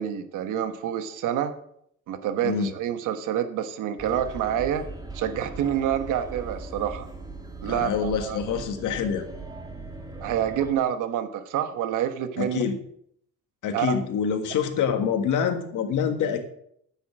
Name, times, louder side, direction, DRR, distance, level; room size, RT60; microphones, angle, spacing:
voice 1, 0.0-1.5 2.1-4.8 5.1-7.1 7.6-8.4 10.2-12.6 13.7-14.0, right 10 dB, 85° right, 9 dB, 1.2 m, -27 dB
sound 1, 4.0-10.7, right 2 dB, 15° right, 2.1 m, -39 dB
voice 2, 7.6-9.3 12.4-12.8 13.6-16.4, left 7 dB, 85° left, 6 dB, 1.7 m, -26 dB
10.5 x 8.3 x 6.2 m, 0.70 s
cardioid pair, 90°, 30 cm